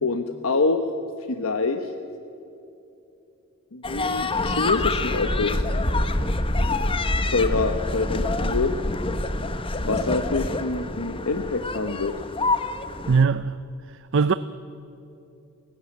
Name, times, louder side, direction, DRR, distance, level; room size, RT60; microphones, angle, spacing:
voice 1, 0.0-0.9 1.3-1.9 3.7-5.7 7.2-8.7 9.8-12.1, left 3 dB, 80° left, 1.1 m, -26 dB
sound 1, 3.8-13.2, left 2 dB, 25° left, 1.1 m, -26 dB
voice 2, 13.1-13.6 14.1-14.3, right 5 dB, 60° right, 0.6 m, -20 dB
30.0 x 16.0 x 8.7 m
head